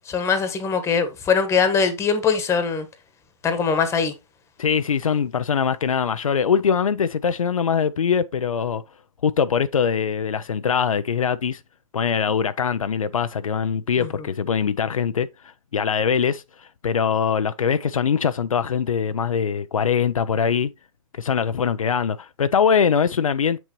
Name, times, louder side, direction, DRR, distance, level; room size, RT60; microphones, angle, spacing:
voice 1, 0.1-2.9 3.4-4.1 14.0-14.1, left 6 dB, 15° left, 1.3 m, -21 dB
voice 2, 4.6-8.8 9.2-11.6 11.9-15.3 15.7-20.7 21.2-23.6, left 7 dB, 80° left, 0.5 m, -22 dB
7.3 x 6.1 x 3.0 m
figure-of-eight pair, 120°, 17 cm